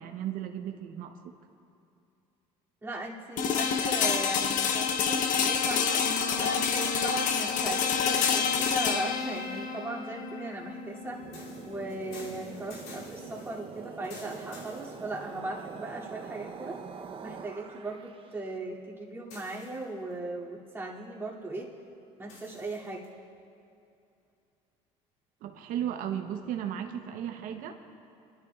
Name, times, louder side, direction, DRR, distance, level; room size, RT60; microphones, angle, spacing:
voice 1, 0.0-1.3 25.4-27.7, right 10 dB, 65° right, 5 dB, 0.8 m, -35 dB
voice 2, 2.8-6.0 6.4-11.2 11.7-16.8 17.2-21.7 22.2-23.0, right 2 dB, 15° right, -5 dB, 2.5 m, -38 dB
sound 1, 3.4-13.3, left 6 dB, 60° left, 0.8 m, -28 dB
sound 2, 4.5-6.7 8.1-9.8 11.3-15.6 16.2-16.3 19.3-20.1 22.3-23.1, left 3 dB, 85° left, 2.7 m, -51 dB
sound 3, 10.9-18.3, right 6 dB, 35° right, 0.8 m, -44 dB
28.5 x 11.5 x 2.4 m, 2.6 s
supercardioid pair, 90°, 15 cm